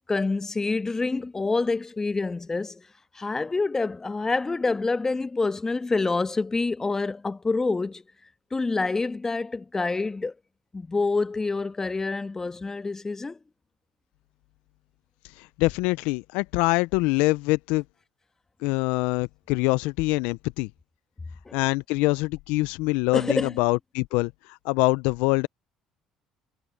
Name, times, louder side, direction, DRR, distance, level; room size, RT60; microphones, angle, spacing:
voice 1, 0.1-2.9 3.1-8.0 8.5-10.3 10.7-13.4 21.4-21.6 23.1-23.6, left 3 dB, 20° left, 1.5 m, -27 dB
voice 2, 15.4-17.8 18.6-20.7 21.5-25.5, left 23 dB, 75° left, 0.7 m, -24 dB
hypercardioid pair, 60°, 2 cm